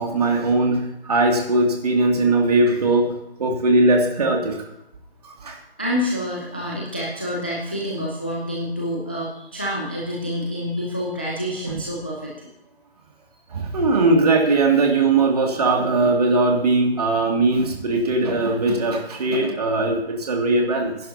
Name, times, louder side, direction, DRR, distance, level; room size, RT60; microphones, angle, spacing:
voice 1, 0.0-3.1 3.4-4.7 5.2-5.6 11.7-11.8 13.5-21.0, right 2 dB, 40° right, 1 dB, 2.5 m, -20 dB
voice 2, 5.8-12.5, equal, 10° left, -3 dB, 0.5 m, -27 dB
19.5 x 11.0 x 2.8 m, 0.86 s
figure-of-eight pair, 155°, 32 cm